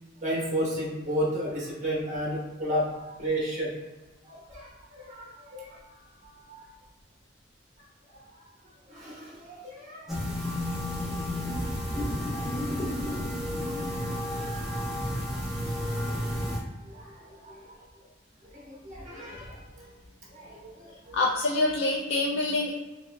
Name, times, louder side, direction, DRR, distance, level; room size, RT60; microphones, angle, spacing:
voice 1, 0.2-2.8 3.2-3.7 4.3-5.8 6.5-6.6 8.1-8.2 8.9-10.0 12.3-12.8 16.9-17.1 17.4-17.6 18.5-19.9 20.3-20.7 21.1-21.2, equal, 40° right, -5 dB, 1.0 m, -33 dB
sound 1, 10.1-16.6, left 1 dB, ahead, 0.6 m, -31 dB
voice 2, 21.1-22.7, left 2 dB, 80° left, -2 dB, 0.4 m, -26 dB
4.6 x 2.0 x 2.2 m, 1.2 s
head